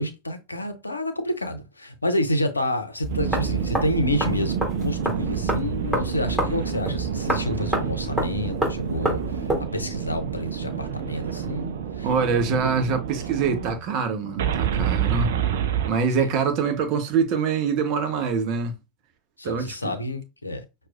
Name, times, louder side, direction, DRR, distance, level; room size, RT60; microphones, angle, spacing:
voice 1, 0.0-9.5 9.7-12.1 13.4-13.8 16.2-16.4 19.4-20.6, left 1 dB, 85° left, 0.6 m, -29 dB
sound 1, 3.0-9.6, equal, 5° right, 2.1 m, -29 dB
sound 2, 3.1-13.7 14.4-15.9, right 8 dB, 65° right, 0.5 m, -28 dB
voice 2, 12.0-15.3 15.9-18.7 19.4-19.9, right 5 dB, 45° right, 0.9 m, -24 dB
6.0 x 2.3 x 2.4 m
figure-of-eight pair, 80°, 0 cm